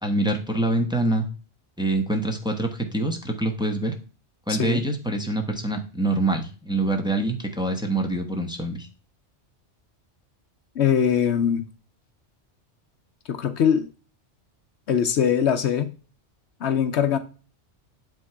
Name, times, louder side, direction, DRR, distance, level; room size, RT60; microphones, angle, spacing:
voice 1, 0.0-1.3 1.8-3.9 4.5-8.9, right 2 dB, 5° right, 1.2 m, -25 dB
voice 2, 4.5-4.8 10.8-11.6 13.3-13.9 14.9-15.9 16.6-17.2, left 8 dB, 70° left, 1.0 m, -22 dB
8.9 x 3.7 x 4.6 m
omnidirectional pair, 1.2 m